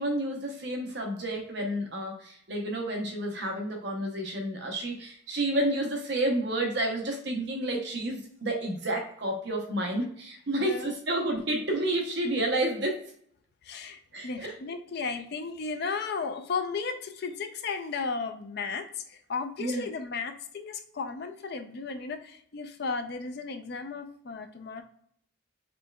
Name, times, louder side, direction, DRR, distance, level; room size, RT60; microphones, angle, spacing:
voice 1, 0.0-13.0 14.1-14.5 19.6-19.8, right 1 dB, 55° right, 2 dB, 0.7 m, -30 dB
voice 2, 10.6-10.9 13.6-24.8, left 4 dB, 50° left, 8 dB, 0.4 m, -35 dB
5.2 x 3.2 x 2.2 m, 0.64 s
head